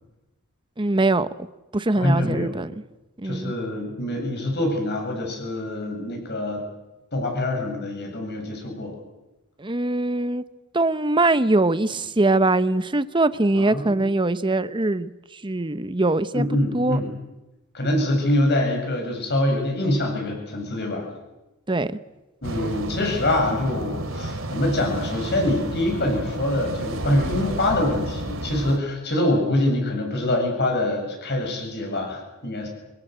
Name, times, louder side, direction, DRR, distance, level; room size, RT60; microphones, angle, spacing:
voice 1, 0.8-1.5 1.7-2.7 3.2-3.5 9.6-10.4 10.7-15.1 15.4-16.5 16.7-17.0 21.7-22.0, right 2 dB, 25° right, 13 dB, 0.9 m, -22 dB
voice 2, 2.0-2.5 3.2-6.6 7.1-9.0 13.5-14.1 16.3-17.1 17.7-21.1 22.4-32.7, left 1 dB, 50° left, 2 dB, 7.9 m, -25 dB
sound 1, 22.4-28.8, right 1 dB, 70° right, 3.0 m, -31 dB
26.0 x 22.5 x 8.0 m, 1.0 s
head